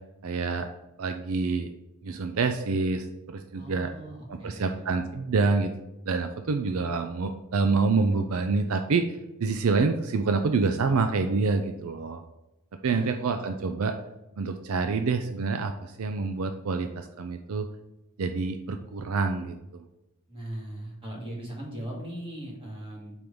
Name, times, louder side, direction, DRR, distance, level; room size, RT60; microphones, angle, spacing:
voice 1, 0.2-0.7 1.0-1.7 2.0-3.9 4.3-5.7 6.1-9.1 9.4-12.2 12.8-13.9 14.4-17.7 18.2-19.8, right 4 dB, 70° right, 7 dB, 0.5 m, -27 dB
voice 2, 3.5-4.9 12.8-13.3 20.3-23.1, right 1 dB, 25° right, -3 dB, 1.9 m, -39 dB
5.1 x 4.6 x 5.4 m, 0.93 s
head